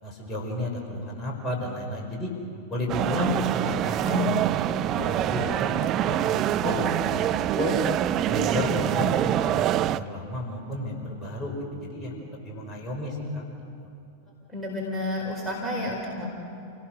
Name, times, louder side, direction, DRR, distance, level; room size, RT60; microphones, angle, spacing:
voice 1, 0.0-2.3 2.7-4.6 4.9-5.7 6.0-7.7 8.3-12.1 12.4-13.4, left 1 dB, 20° left, -2 dB, 5.4 m, -31 dB
sound 1, 2.9-10.0, right 12 dB, 35° right, 0.5 m, -25 dB
voice 2, 14.5-16.3, left 1 dB, 5° left, -4 dB, 4.4 m, -30 dB
29.0 x 18.0 x 6.6 m, 2.8 s
figure-of-eight pair, 90°, 0 cm